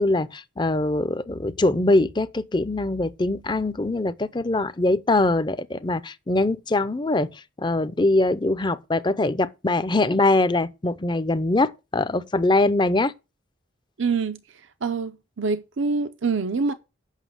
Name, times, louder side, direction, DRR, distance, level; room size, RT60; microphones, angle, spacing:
voice 1, 0.0-13.1, left 2 dB, 25° left, 0.5 m, -23 dB
voice 2, 14.0-14.4 14.8-16.7, right 4 dB, 75° right, 0.6 m, -25 dB
8.2 x 5.9 x 7.6 m
head